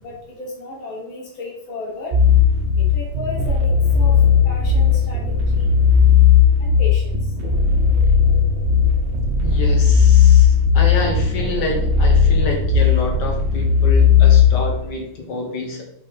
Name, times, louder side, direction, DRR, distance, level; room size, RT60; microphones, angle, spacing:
voice 1, 0.0-2.2 2.8-4.2 4.4-5.2 5.5-5.7 6.6-7.2, left 2 dB, 75° left, -3 dB, 2.5 m, -34 dB
sound 1, 2.1-14.7, left 6 dB, 65° right, 0.6 m, -15 dB
voice 2, 9.4-15.8, left 2 dB, 60° left, 1 dB, 2.0 m, -27 dB
5.4 x 4.9 x 4.3 m, 0.79 s
omnidirectional pair, 2.2 m